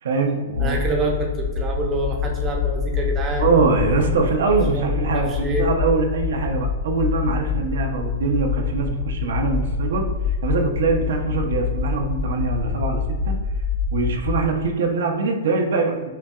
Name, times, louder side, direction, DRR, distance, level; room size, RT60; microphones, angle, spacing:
voice 1, 0.0-0.8 3.4-13.4 13.9-16.1, right 4 dB, 75° right, 2 dB, 0.6 m, -23 dB
sound 1, 0.5-14.4, left 5 dB, 90° left, 0.6 m, -25 dB
voice 2, 0.6-3.5 4.7-5.6, right 2 dB, 20° right, 1 dB, 0.6 m, -27 dB
5.5 x 2.2 x 2.4 m, 1.3 s
hypercardioid pair, 160°, 0 cm